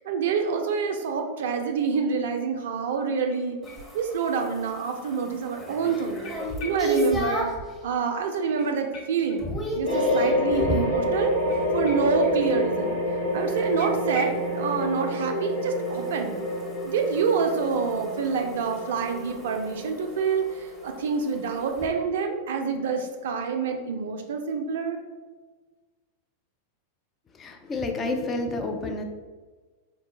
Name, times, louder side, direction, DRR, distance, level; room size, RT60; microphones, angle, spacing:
voice 1, 0.1-3.6 3.9-6.2 6.6-7.5 7.8-9.4 9.7-11.3 11.7-13.0 13.3-16.4 16.8-25.0, right 5 dB, 55° right, 4 dB, 0.4 m, -27 dB
sound 1, 3.3-4.4 4.8-4.9 6.2-7.4 7.7-7.8 8.1-8.2 8.6-10.1 11.5-12.7 12.9-13.0 13.3-13.4 13.8-14.5, left 4 dB, 50° left, 0.8 m, -45 dB
sound 2, 3.6-7.7 8.2-8.6 8.9-11.0 13.5-21.9, equal, 5° left, 0.8 m, -34 dB
sound 3, 9.8-22.6, left 1 dB, 75° left, 1.0 m, -28 dB
voice 2, 27.4-29.0, left 2 dB, 20° left, 4 dB, 0.4 m, -29 dB
4.1 x 2.2 x 2.9 m, 1.3 s
figure-of-eight pair, 90°, 0 cm